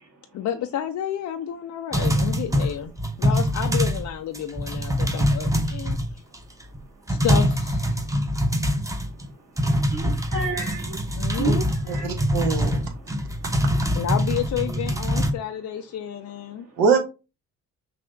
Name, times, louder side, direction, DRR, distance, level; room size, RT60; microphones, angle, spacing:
voice 1, 0.3-2.9 3.2-6.0 7.1-8.1 11.2-12.0 13.9-16.7, left 9 dB, 45° left, 0.5 m, -30 dB
sound 1, 1.9-4.1 4.3-6.3 6.7-6.8 7.1-9.3 9.6-15.3, equal, 10° right, 0.8 m, -24 dB
voice 2, 9.9-12.1, right 3 dB, 45° right, 1.4 m, -31 dB
voice 3, 11.9-12.9 16.8-17.0, right 5 dB, 70° right, 1.1 m, -23 dB
5.8 x 2.7 x 2.6 m
hypercardioid pair, 40°, 39 cm